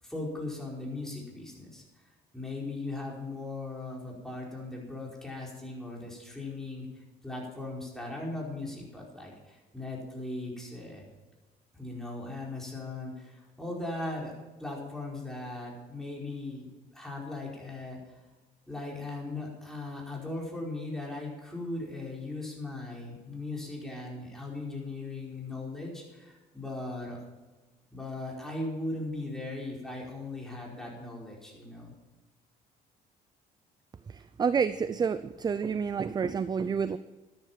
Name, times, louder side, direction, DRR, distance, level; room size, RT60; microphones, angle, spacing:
voice 1, 0.0-1.8 2.3-11.1 11.7-16.7 16.9-18.0 18.7-27.2 27.9-31.9, left 2 dB, 5° left, -3 dB, 4.9 m, -38 dB
voice 2, 34.1-37.0, right 6 dB, 25° right, 14 dB, 0.4 m, -29 dB
13.0 x 10.5 x 5.8 m, 1.2 s
cardioid pair, 110°, 17 cm